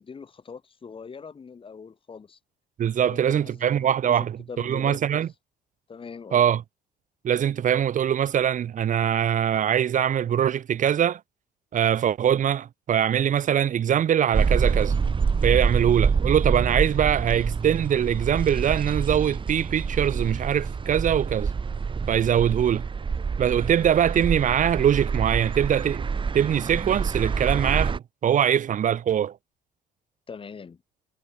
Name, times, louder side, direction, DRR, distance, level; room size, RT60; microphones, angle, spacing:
voice 1, 0.0-2.4 3.0-5.0 5.9-6.4 30.3-30.8, left 5 dB, 30° left, 5.1 m, -42 dB
voice 2, 2.8-5.3 6.3-6.6 7.2-11.2 11.7-14.9 15.4-21.5 22.1-22.9 23.4-26.1 26.3-29.4, right 9 dB, 50° right, 2.0 m, -22 dB
sound 1, 14.3-28.0, right 5 dB, 30° right, 2.7 m, -26 dB
cardioid pair, 110°, 17 cm